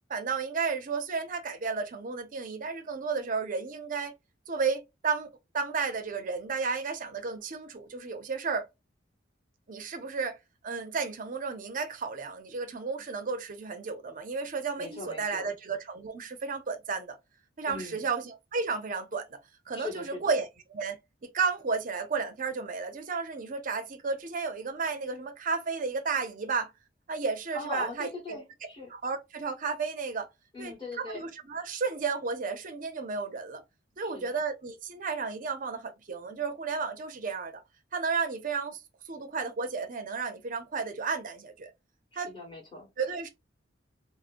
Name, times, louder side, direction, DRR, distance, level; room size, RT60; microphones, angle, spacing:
voice 1, 0.1-4.1 4.5-5.3 5.5-8.7 9.7-10.4 10.6-17.2 17.6-19.4 19.7-20.5 20.7-21.0 21.2-26.7 27.1-28.4 28.9-30.3 30.6-33.6 34.0-37.6 37.9-41.7 42.1-42.3 43.0-43.3, right 5 dB, 45° right, 0.6 m, -33 dB
voice 2, 14.8-15.5 17.7-18.0 19.7-20.3 27.5-28.9 30.5-31.3 34.0-34.4 42.1-42.9, left 2 dB, 25° left, 1.9 m, -40 dB
3.5 x 2.1 x 2.5 m
head